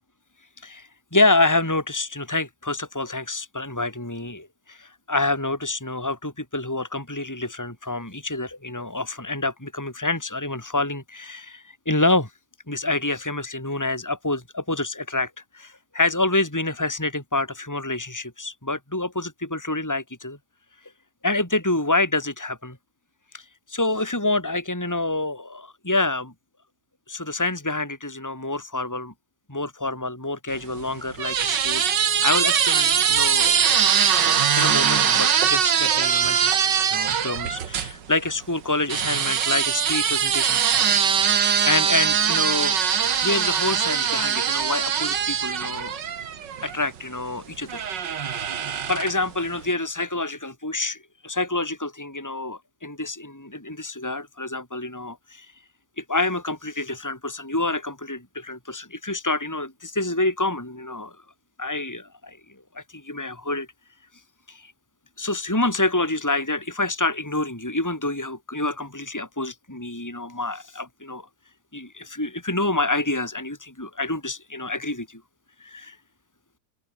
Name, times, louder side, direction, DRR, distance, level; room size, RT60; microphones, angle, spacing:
voice 1, 0.6-12.3 12.7-20.4 21.2-22.8 23.3-23.4 23.7-26.3 27.1-29.1 29.5-31.8 32.2-33.6 34.1-36.5 36.9-40.6 41.3-42.9 43.2-46.0 46.6-48.5 48.9-55.5 56.0-61.2 61.6-62.4 62.7-63.7 64.5-64.7 65.2-71.3 71.7-75.2 75.6-76.0, left 2 dB, 5° left, 5.9 m, -27 dB
sound 1, 30.5-37.9 38.9-46.8 47.7-49.3, right 8 dB, 45° right, 1.6 m, -22 dB
omnidirectional pair, 3.6 m